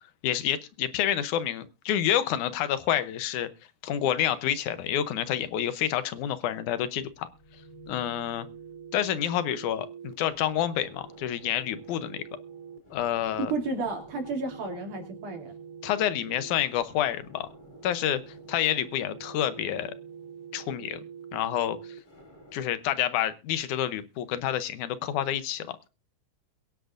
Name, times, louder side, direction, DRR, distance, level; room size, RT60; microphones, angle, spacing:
voice 1, 0.2-3.5 3.8-7.3 7.9-8.5 8.9-12.2 12.9-13.5 15.8-17.5 17.8-18.2 18.5-19.9 20.5-21.0 21.3-22.0 22.5-25.8, left 11 dB, 75° left, 2.2 m, -28 dB
sound 1, 6.9-22.6, right 6 dB, 15° left, 2.1 m, -46 dB
voice 2, 13.4-15.5, right 3 dB, 70° right, 4.2 m, -32 dB
22.5 x 10.5 x 2.5 m
omnidirectional pair, 3.7 m